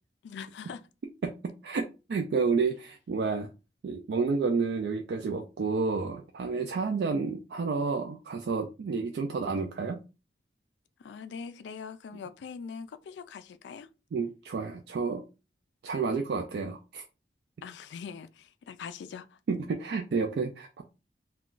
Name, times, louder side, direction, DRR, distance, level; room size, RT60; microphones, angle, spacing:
voice 1, 0.2-0.8 11.0-13.9 17.6-19.4, left 6 dB, 80° left, 0.3 m, -42 dB
voice 2, 1.6-3.5 3.8-10.0 14.1-15.2 15.8-17.0 19.5-20.8, right 4 dB, 70° right, 0.3 m, -30 dB
2.4 x 2.2 x 3.7 m
head